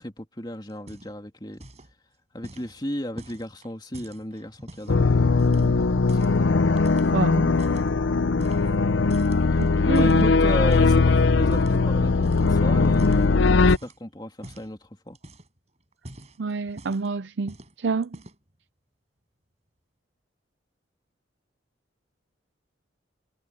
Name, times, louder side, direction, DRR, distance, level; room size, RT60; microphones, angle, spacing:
voice 1, 0.0-1.7 2.3-6.2 9.5-15.2, left 1 dB, 20° left, 2.9 m, -35 dB
sound 1, 0.7-1.3 1.5-1.9 2.4-5.0 5.4-6.4 6.8-7.9 8.4-8.8 9.1-11.0 11.5-11.8 12.2-12.5 12.8-14.0 14.4-14.7 15.1-15.6 15.9-17.1 17.5-17.7 18.0-18.5, right 1 dB, 35° right, 5.9 m, -45 dB
sound 2, 4.9-13.8, left 3 dB, 85° left, 0.6 m, -20 dB
voice 2, 7.1-7.5 9.6-10.3 16.4-18.2, right 4 dB, 70° right, 0.5 m, -28 dB
head